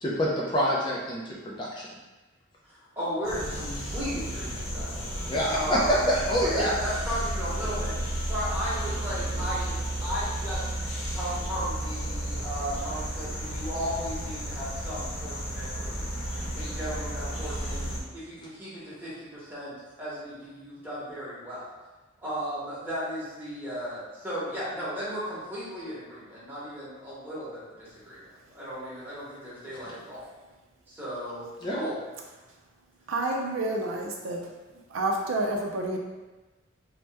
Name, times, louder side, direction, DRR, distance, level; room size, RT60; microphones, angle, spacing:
voice 1, 0.0-1.7 5.3-5.8 6.1-6.7 31.6-31.8, equal, 20° left, -5 dB, 0.3 m, -26 dB
voice 2, 2.7-4.9 5.5-16.1 16.5-21.6 22.2-30.3 30.9-31.9, equal, 10° right, -10 dB, 0.9 m, -35 dB
sound 1, 3.2-18.0, right 1 dB, 80° left, 0.7 m, -33 dB
voice 3, 33.1-34.4 34.9-36.0, right 2 dB, 80° right, 1 dB, 0.4 m, -29 dB
2.8 x 2.1 x 3.3 m, 1.2 s
head